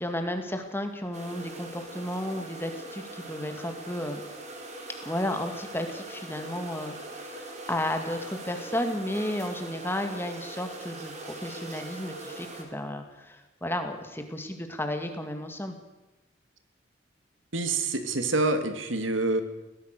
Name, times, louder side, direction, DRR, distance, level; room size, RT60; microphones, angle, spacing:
voice 1, 0.0-4.2 5.0-15.8, left 1 dB, 10° left, 5 dB, 2.3 m, -33 dB
sound 1, 1.1-12.6, right 2 dB, 35° right, 3.6 m, -41 dB
voice 2, 17.5-19.4, right 2 dB, 80° right, 8 dB, 2.3 m, -26 dB
22.0 x 18.5 x 6.7 m, 1.0 s
head